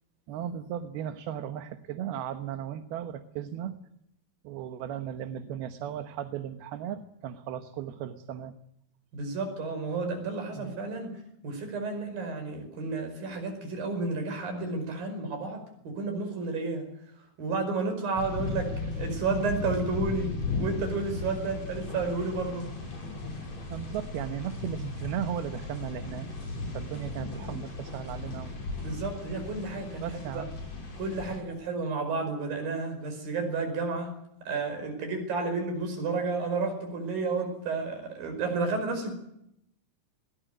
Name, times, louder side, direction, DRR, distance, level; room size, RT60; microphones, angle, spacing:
voice 1, 0.3-3.8 4.4-8.5 10.6-10.8 23.7-26.3 26.7-28.5 30.0-30.5, right 10 dB, 85° right, 8 dB, 3.1 m, -36 dB
voice 2, 9.1-16.9 17.2-22.7 28.8-30.4 31.0-34.2 34.4-39.1, right 3 dB, 70° right, 5 dB, 6.8 m, -32 dB
sound 1, 18.1-31.4, left 3 dB, 45° left, 7.1 m, -36 dB
22.5 x 18.0 x 9.0 m, 0.79 s
omnidirectional pair, 4.3 m